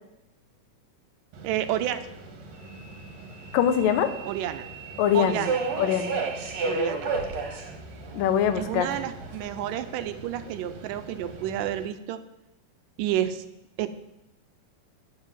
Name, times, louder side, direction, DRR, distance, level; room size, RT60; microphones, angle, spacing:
Subway metro underground, 1.3-11.8, right 4 dB, 60° right, 2.4 m, -35 dB
voice 1, 1.4-2.0 4.2-4.7 5.1-5.6 6.6-7.1 8.5-12.2 13.0-13.4 13.8-13.9, right 11 dB, 85° right, 11 dB, 2.3 m, -30 dB
voice 2, 3.5-4.1 5.0-5.5 5.8-6.2 8.1-8.9, left 9 dB, 85° left, 10 dB, 2.6 m, -23 dB
10.0 x 7.5 x 7.4 m, 0.88 s
omnidirectional pair, 3.8 m